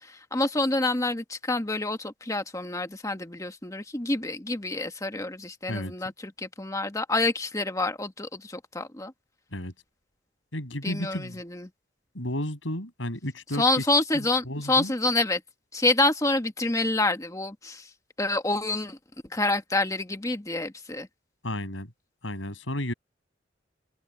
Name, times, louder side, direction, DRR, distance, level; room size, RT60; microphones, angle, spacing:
voice 1, 0.0-9.1 10.8-11.7 13.6-15.4 15.7-17.9 18.2-19.0 19.3-21.1, left 2 dB, 15° left, 1.3 m, -27 dB
voice 2, 5.7-6.1 9.5-9.7 10.5-11.4 12.1-13.8 14.1-14.9 21.4-21.9 22.2-22.9, left 1 dB, 80° left, 6.3 m, -33 dB
open air
head